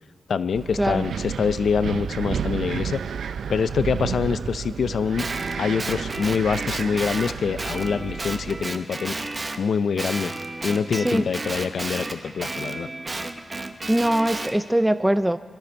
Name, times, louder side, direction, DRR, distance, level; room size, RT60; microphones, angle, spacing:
voice 1, 0.3-3.0 3.5-5.2 5.6-9.2 9.6-10.3 10.6-12.9, left 6 dB, 70° left, 14 dB, 0.5 m, -25 dB
Wind, 0.5-8.7, right 7 dB, 85° right, 0.4 m, -31 dB
Guitar, 5.2-9.6 10.0-14.5, right 2 dB, 25° right, 0.8 m, -32 dB
voice 2, 10.9-11.3 13.9-15.4, right 1 dB, 5° right, 12 dB, 0.4 m, -22 dB
22.5 x 12.5 x 4.5 m, 1.5 s
wide cardioid pair, 135°, 0 cm